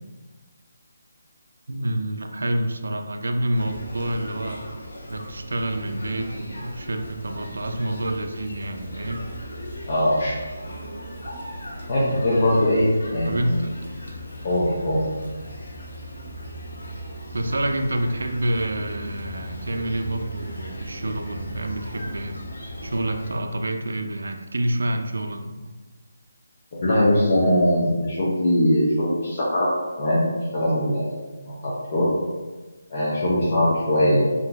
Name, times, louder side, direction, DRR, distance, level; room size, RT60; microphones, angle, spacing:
voice 1, 1.7-4.6 5.1-9.3 13.2-13.7 17.3-22.4 22.8-25.5, right 1 dB, 85° right, 6 dB, 0.3 m, -27 dB
sound 1, 3.5-23.4, equal, 75° left, 0.7 m, -38 dB
voice 2, 9.9-10.4 11.9-13.5 14.4-15.0 26.8-29.7 30.0-30.2 30.5-31.0 31.4-32.1 32.9-34.3, left 1 dB, 35° left, -8 dB, 0.5 m, -21 dB
2.8 x 2.5 x 2.3 m, 1.2 s
hypercardioid pair, 170°, 0 cm